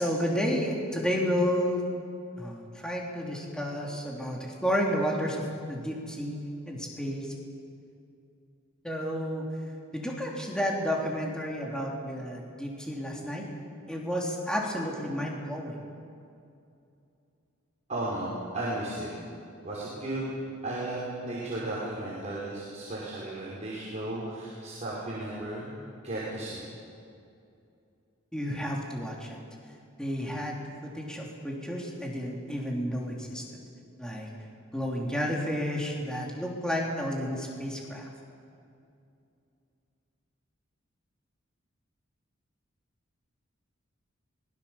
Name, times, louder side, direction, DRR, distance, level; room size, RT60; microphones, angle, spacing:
voice 1, 0.0-1.8 2.4-6.4 6.7-7.3 8.8-9.5 9.9-13.5 13.9-15.8 28.3-29.4 30.0-33.6 34.0-34.3 34.7-38.1, equal, 5° left, -2 dB, 3.2 m, -31 dB
voice 2, 17.9-19.1 19.6-20.3 20.6-26.6, right 1 dB, 35° right, -7 dB, 5.4 m, -35 dB
25.5 x 21.5 x 7.2 m, 2.5 s
head